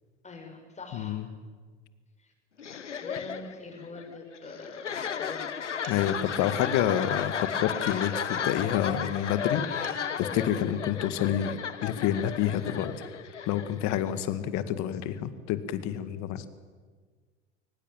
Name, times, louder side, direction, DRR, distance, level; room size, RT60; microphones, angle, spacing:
voice 1, 0.2-1.2 2.2-2.3 3.0-6.1, left 3 dB, 20° left, 3 dB, 7.1 m, -44 dB
voice 2, 0.9-1.3 5.9-12.9 13.5-16.4, left 10 dB, 50° left, 13 dB, 2.0 m, -28 dB
sound 1, 2.6-14.3, left 7 dB, 85° left, 1.1 m, -34 dB
Dishes pots and pans, 5.8-6.3 7.9-8.3 9.5-9.6 9.8-10.3, right 5 dB, 70° right, 5.5 m, -50 dB
23.0 x 19.5 x 9.1 m, 1.5 s
figure-of-eight pair, 75°, 35 cm